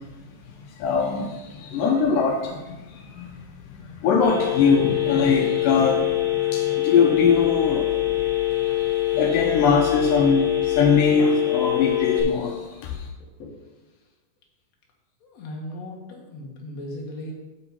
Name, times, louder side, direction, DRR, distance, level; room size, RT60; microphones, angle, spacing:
voice 1, 0.8-3.3 3.7-8.0 8.6-8.7 9.1-13.1, left 5 dB, 80° left, 2 dB, 2.4 m, -22 dB
Telephone, 4.2-12.2, left 13 dB, 15° left, 2.7 m, -24 dB
voice 2, 15.2-17.3, left 1 dB, 55° left, -1 dB, 2.6 m, -37 dB
9.4 x 6.9 x 4.7 m, 1.1 s
omnidirectional pair, 3.9 m